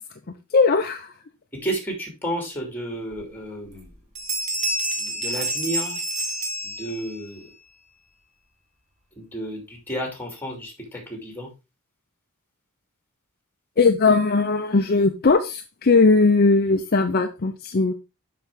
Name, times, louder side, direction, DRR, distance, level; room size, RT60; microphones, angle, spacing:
voice 1, 0.5-1.1 13.8-17.9, left 3 dB, 45° left, 0.6 m, -19 dB
voice 2, 1.5-3.9 5.0-6.0 6.6-7.5 9.2-11.5, right 1 dB, 10° left, 2.6 m, -32 dB
sound 1, 3.1-3.2 3.7-3.9 4.2-7.3, right 1 dB, 30° right, 1.5 m, -28 dB
7.1 x 6.0 x 3.7 m
head